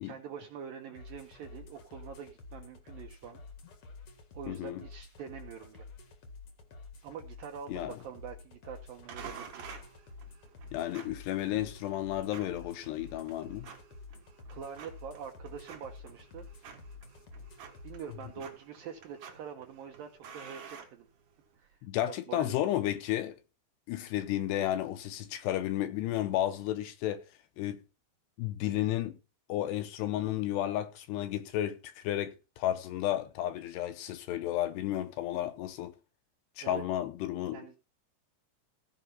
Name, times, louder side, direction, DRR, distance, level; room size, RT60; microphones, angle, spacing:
voice 1, 0.0-3.4 4.3-5.9 7.0-9.7 14.5-16.5 17.8-21.1 21.6-21.7 22.0-22.8 36.6-36.8 37.5-37.8, right 7 dB, 75° right, 2.2 m, -45 dB
sound 1, 0.9-18.3, left 4 dB, 55° left, 1.6 m, -50 dB
voice 2, 4.5-4.8 7.7-8.0 10.7-13.7 21.8-23.3 23.9-27.2 27.6-27.8 28.4-29.2 29.5-35.9 36.6-37.6, left 13 dB, 75° left, 2.7 m, -32 dB
sound 2, 9.1-21.6, right 7 dB, 55° right, 2.5 m, -51 dB
16.0 x 5.4 x 5.7 m
omnidirectional pair, 5.3 m